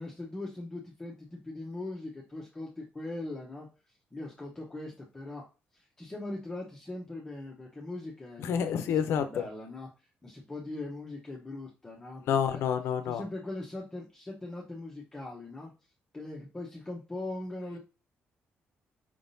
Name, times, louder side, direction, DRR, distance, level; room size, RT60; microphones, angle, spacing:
voice 1, 0.0-3.7 4.1-5.4 5.7-9.9 10.2-12.6 13.1-15.7 16.1-17.8, left 2 dB, 10° left, 0.9 m, -40 dB
voice 2, 8.4-9.2 12.3-13.2, left 8 dB, 85° left, 0.7 m, -28 dB
5.2 x 3.5 x 2.6 m
cardioid pair, 155°, 4 cm